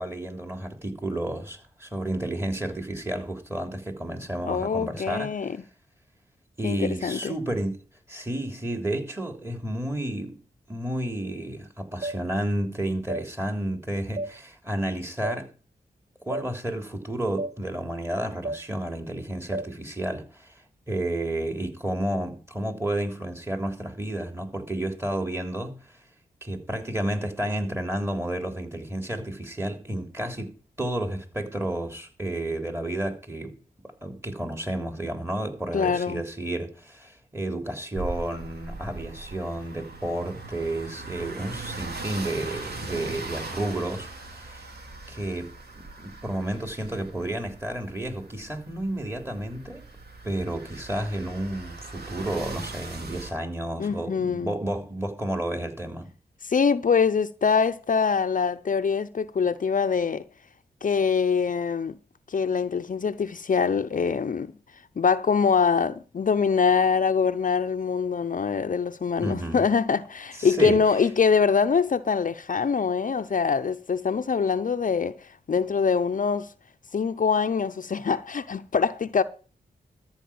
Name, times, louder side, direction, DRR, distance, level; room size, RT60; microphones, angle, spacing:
voice 1, 0.0-5.3 6.6-7.8 8.1-10.4 10.7-15.5 16.2-25.9 26.4-44.7 45.1-49.8 50.2-56.1 69.2-69.6 70.4-70.8, right 1 dB, 15° right, 3.3 m, -31 dB
voice 2, 4.4-5.6 6.6-7.3 35.7-36.2 53.8-54.5 56.4-60.2 60.8-62.0 62.3-64.5 65.0-76.5 76.9-79.2, left 6 dB, 50° left, 0.7 m, -24 dB
sound 1, 12.0-12.2 13.1-13.2 14.2-14.3 15.2-15.4 16.3-16.5 17.4-17.5 18.4-18.6 19.5-19.7, right 2 dB, 50° right, 0.8 m, -31 dB
sound 2, 38.0-53.3, right 3 dB, 75° right, 2.6 m, -40 dB
13.5 x 4.8 x 8.7 m
cardioid pair, 60°, 17 cm